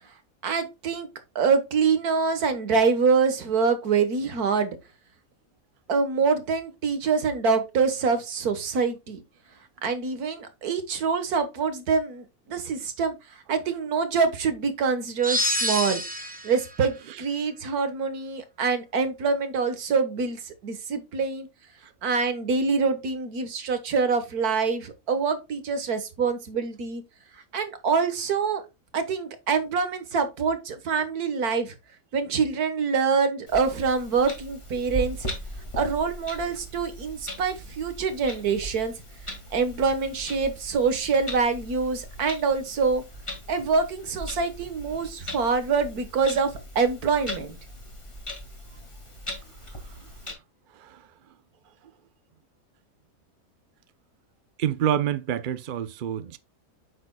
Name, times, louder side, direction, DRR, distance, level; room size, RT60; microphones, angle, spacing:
voice 1, 0.4-1.1 1.4-4.8 5.9-9.2 9.8-16.0 16.4-21.5 22.0-27.0 27.5-28.6 28.9-31.8 32.1-35.3 35.7-38.9 39.5-43.0 43.5-47.6, right 5 dB, 85° right, 1.8 m, -25 dB
sound 1, 15.2-16.6, equal, 5° right, 1.2 m, -27 dB
Clock, 33.5-50.3, equal, 20° left, 2.0 m, -39 dB
voice 2, 54.6-56.4, right 10 dB, 50° right, 0.6 m, -27 dB
8.7 x 6.7 x 2.2 m
omnidirectional pair, 1.6 m